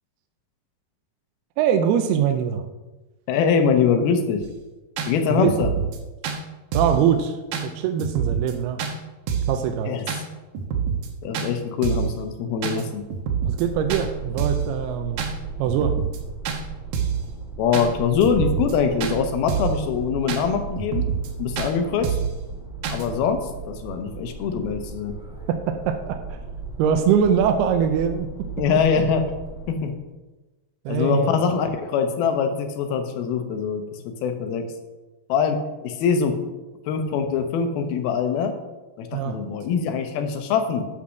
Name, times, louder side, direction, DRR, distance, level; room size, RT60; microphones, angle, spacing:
voice 1, 1.6-2.6 5.3-5.5 6.7-7.3 7.6-8.8 9.5-10.0 13.4-15.2 15.6-15.9 25.5-26.4 26.8-28.3 30.9-31.3 39.1-39.4, right 8 dB, 85° right, 7 dB, 2.7 m, -22 dB
voice 2, 3.3-4.4 5.1-5.7 9.9-10.1 11.2-13.0 17.6-21.1 21.4-22.1 22.9-25.1 28.6-29.3 29.7-29.9 30.9-34.7 35.3-36.4 36.9-38.5 39.0-40.9, left 6 dB, 75° left, 6 dB, 2.8 m, -23 dB
sound 1, 4.4-4.5 5.0-5.1 5.4-6.0 6.2-6.4 6.7-7.0 7.5-7.7 8.0-8.5 8.8-8.9 9.3-9.6 10.1-10.2 10.5-11.1 11.3-11.5 11.8-12.1 12.6-12.8 13.1-13.6 13.9-14.0 14.4-14.7 15.2-15.3 15.7-16.2 16.4-16.6 16.9-17.2 17.7-17.9 18.2-18.7 19.0-19.2 19.5-19.8 20.3-20.4 20.8-21.3 21.6-21.7 22.0-22.3 22.8-23.0, right 7 dB, 70° right, 2.2 m, -26 dB
sound 2, 13.0-29.9, right 5 dB, 5° right, 0.9 m, -36 dB
9.6 x 5.8 x 6.4 m, 1.1 s
omnidirectional pair, 4.5 m